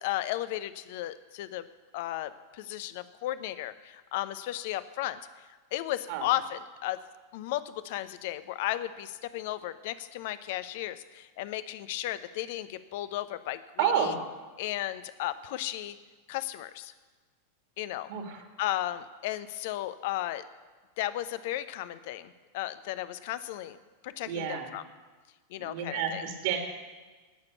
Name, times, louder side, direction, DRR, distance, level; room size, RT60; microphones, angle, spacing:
voice 1, 0.0-1.7 1.9-5.2 5.7-7.0 7.3-14.1 14.6-16.0 16.3-16.9 17.8-18.1 18.6-20.4 21.0-23.8 24.0-24.8 25.5-26.2, left 14 dB, 50° left, 14 dB, 0.8 m, -34 dB
voice 2, 13.8-14.2 18.1-18.5 24.2-24.7 25.6-26.6, right 8 dB, 50° right, 4 dB, 2.3 m, -30 dB
17.5 x 6.9 x 8.2 m, 1.3 s
figure-of-eight pair, 90°, 0 cm